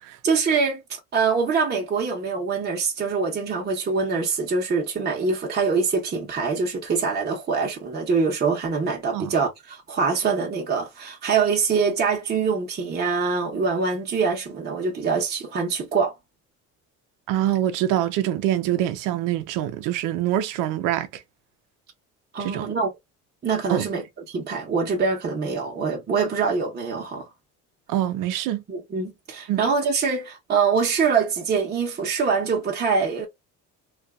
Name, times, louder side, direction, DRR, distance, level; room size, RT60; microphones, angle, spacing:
voice 1, 0.2-16.1 22.3-22.9 23.4-27.3 28.7-33.3, right 5 dB, 30° right, 0.9 m, -24 dB
voice 2, 17.3-21.2 22.4-22.7 23.7-23.9 27.9-28.6 29.5-29.6, right 12 dB, 70° right, 0.6 m, -25 dB
2.5 x 2.4 x 2.3 m
supercardioid pair, 85°, 33 cm